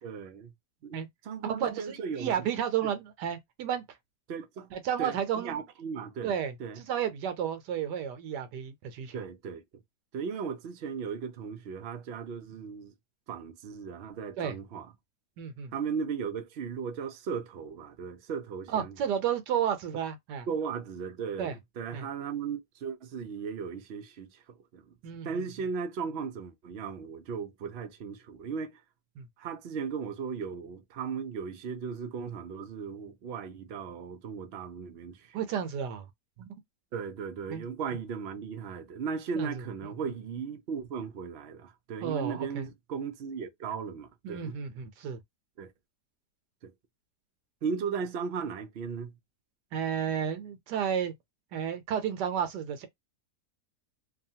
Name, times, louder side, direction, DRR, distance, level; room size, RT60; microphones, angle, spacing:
voice 1, 0.0-0.5 0.8-1.0 1.2-2.5 2.8-2.9 4.3-4.7 5.0-6.3 6.6-6.8 9.1-9.6 10.1-12.9 13.3-14.9 15.7-19.0 20.5-24.9 25.2-28.8 29.4-35.4 36.4-36.5 36.9-44.6 45.6-45.7 46.6-46.7 47.6-49.2, right 6 dB, 70° right, 0.6 m, -36 dB
voice 2, 1.4-3.8 4.7-5.6 6.2-9.2 14.4-14.6 15.4-15.7 18.7-20.5 21.4-21.6 21.9-22.1 25.0-25.5 29.2-29.3 35.3-36.1 36.4-36.5 37.5-37.6 39.3-39.6 42.0-42.7 44.2-45.2 49.7-51.1 51.5-52.9, right 8 dB, 85° right, 1.3 m, -32 dB
2.9 x 2.3 x 2.7 m
omnidirectional pair, 1.8 m